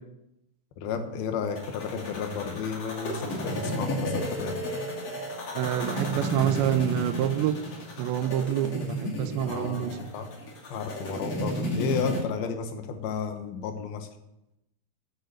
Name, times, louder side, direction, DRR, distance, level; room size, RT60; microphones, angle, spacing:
voice 1, 0.8-4.6 9.4-10.3 10.7-14.1, left 6 dB, 70° left, 6 dB, 2.9 m, -32 dB
sound 1, 1.6-12.2, equal, 45° left, 2.8 m, -33 dB
voice 2, 5.5-7.6 8.0-10.0, right 11 dB, 90° right, 11 dB, 2.9 m, -27 dB
10.5 x 8.1 x 8.1 m, 0.89 s
omnidirectional pair, 5.0 m